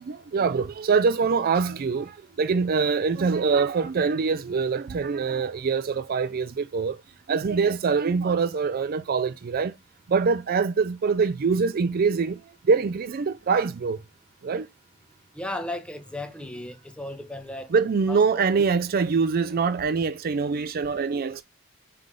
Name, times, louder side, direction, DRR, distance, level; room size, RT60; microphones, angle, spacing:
voice 1, 0.1-7.0 7.3-9.7 10.1-12.4 12.7-14.0 14.4-14.7 17.7-21.4, right 5 dB, 45° right, 0.4 m, -24 dB
voice 2, 15.3-17.7 18.1-18.5, left 1 dB, 5° left, 0.9 m, -35 dB
7.5 x 3.4 x 3.7 m
head